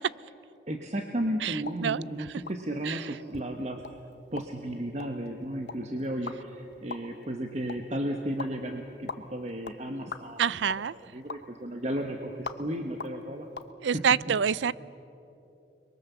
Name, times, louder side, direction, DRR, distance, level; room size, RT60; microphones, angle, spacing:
voice 1, 0.7-3.8 4.3-10.5 11.0-13.5 13.9-14.1, right 1 dB, 40° right, 1.2 m, -34 dB
voice 2, 1.4-2.0 2.8-3.0 10.4-10.9 13.8-14.7, right 7 dB, 90° right, 0.5 m, -27 dB
sound 1, 1.6-13.7, left 4 dB, 70° left, 1.0 m, -45 dB
29.5 x 22.5 x 7.0 m
head